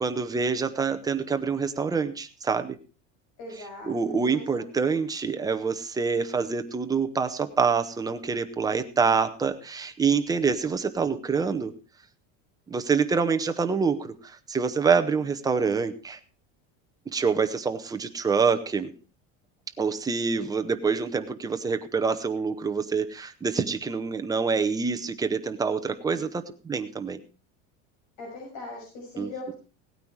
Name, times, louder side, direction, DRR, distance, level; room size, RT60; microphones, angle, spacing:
voice 1, 0.0-2.8 3.8-11.7 12.7-16.2 17.1-18.9 19.8-27.2 29.2-29.5, right 5 dB, 10° right, 7 dB, 0.7 m, -26 dB
voice 2, 3.4-4.4 4.7-5.0 14.9-15.3 28.2-29.5, left 1 dB, 55° left, -2 dB, 6.3 m, -40 dB
17.5 x 9.3 x 4.6 m, 0.35 s
cardioid pair, 175°, 36 cm